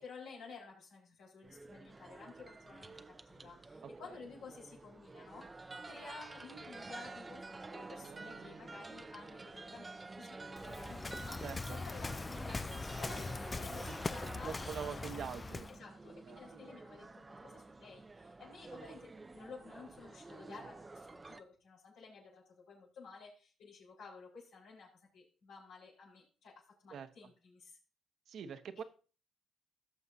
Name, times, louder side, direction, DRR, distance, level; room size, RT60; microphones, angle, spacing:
voice 1, 0.0-11.5 11.7-15.1 15.7-26.5 26.8-27.8, left 4 dB, 85° left, -6 dB, 4.6 m, -53 dB
sound 1, 1.4-21.4, right 3 dB, 25° right, 0.6 m, -50 dB
voice 2, 3.8-4.2 8.0-8.6 11.4-11.8 13.9-14.0 14.4-15.7 16.2-16.4 20.6-20.7 26.9-27.1 28.3-28.8, right 7 dB, 65° right, 8 dB, 1.1 m, -45 dB
Waves surf, 10.6-15.8, left 3 dB, 25° left, 0.4 m, -41 dB
17.0 x 6.8 x 2.7 m, 0.37 s
cardioid pair, 90°, 0 cm